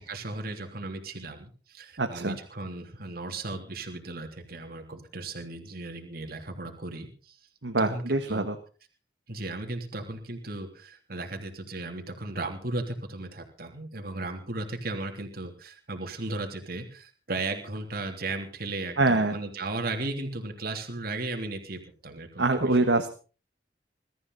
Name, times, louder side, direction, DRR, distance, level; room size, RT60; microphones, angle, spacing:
voice 1, 0.0-7.4 7.8-8.4 9.3-22.5, right 2 dB, 60° right, 4 dB, 3.3 m, -36 dB
voice 2, 2.0-2.4 7.6-8.6 19.0-19.4 22.4-23.1, right 2 dB, 90° right, 6 dB, 1.6 m, -24 dB
22.0 x 14.0 x 4.1 m, 0.38 s
head